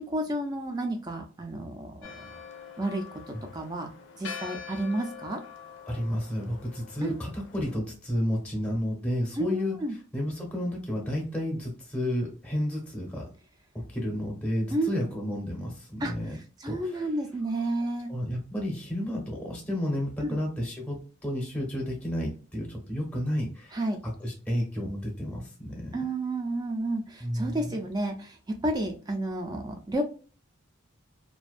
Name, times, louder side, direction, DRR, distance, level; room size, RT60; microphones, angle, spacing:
voice 1, 0.0-2.4 2.8-3.0 3.5-3.9 4.2-5.4 7.0-7.1 9.4-9.9 14.7-14.9 16.0-16.1 16.6-18.1 20.2-20.4 23.7-24.0 25.9-28.4 28.6-30.0, right 1 dB, 20° right, 4 dB, 0.3 m, -31 dB
Church bell, 2.0-7.8, left 7 dB, 65° left, 0.5 m, -44 dB
voice 2, 5.9-13.2 13.7-16.3 16.7-17.1 17.5-17.6 18.1-26.0 27.2-27.8, equal, 5° left, -2 dB, 0.7 m, -32 dB
2.5 x 2.2 x 2.4 m, 0.38 s
head